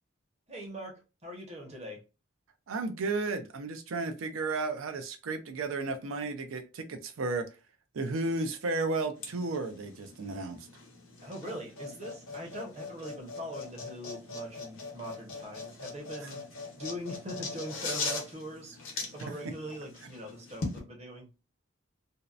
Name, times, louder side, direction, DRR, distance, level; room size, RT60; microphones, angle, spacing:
voice 1, 0.5-0.9 1.2-2.0 11.2-16.4 16.8-18.8 19.1-21.3, equal, 30° right, 0.7 m, -41 dB
voice 2, 2.7-7.5 7.9-10.6, right 3 dB, 85° right, 0.5 m, -33 dB
sound 1, 9.2-20.8, left 3 dB, 80° left, 0.7 m, -41 dB
2.7 x 2.0 x 2.4 m
head